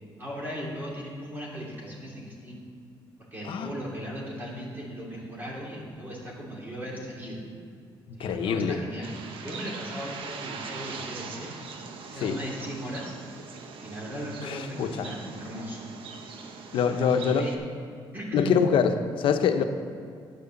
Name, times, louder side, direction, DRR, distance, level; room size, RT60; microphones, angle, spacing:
voice 1, 0.2-2.7 3.2-7.4 8.1-9.1 9.4-11.5 12.1-13.2 13.8-15.9 16.9-17.5 18.1-18.5, equal, 20° right, -5 dB, 2.8 m, -37 dB
voice 2, 8.2-8.8 12.2-12.4 14.4-15.1 16.7-17.5 18.3-19.6, left 7 dB, 80° left, 7 dB, 0.9 m, -25 dB
Bird, 9.0-17.5, right 5 dB, 80° right, 1.2 m, -41 dB
9.9 x 8.4 x 7.1 m, 2.4 s
cardioid pair, 130°, 9 cm